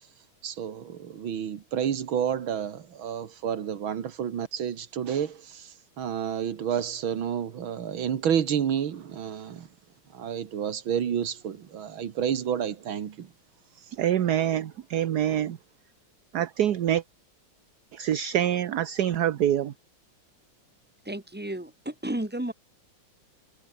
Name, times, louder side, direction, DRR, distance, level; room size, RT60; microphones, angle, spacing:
voice 1, 0.4-9.7 10.1-13.3, right 8 dB, 85° right, 2.4 m, -30 dB
voice 2, 14.0-15.6 16.3-17.0 17.9-19.7, right 11 dB, 60° right, 1.4 m, -25 dB
voice 3, 21.0-22.5, right 1 dB, 5° right, 2.9 m, -32 dB
omnidirectional pair, 2.1 m